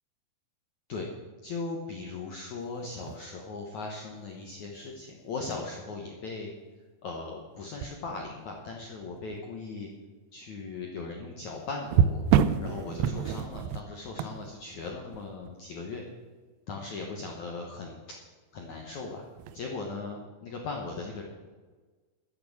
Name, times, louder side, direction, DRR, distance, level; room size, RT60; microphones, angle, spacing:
voice 1, 1.4-6.5 7.0-9.9 10.3-12.2 12.6-16.0 16.7-18.0 18.5-19.2 19.5-21.2, left 3 dB, 80° left, 1 dB, 1.6 m, -38 dB
sound 1, 2.8-3.2 4.7-4.9 5.5-5.6 7.8-8.6 9.2-9.4 11.8-15.5 19.4-19.6, right 8 dB, 80° right, 2.6 m, -28 dB
12.5 x 8.9 x 7.2 m, 1.3 s
omnidirectional pair, 5.5 m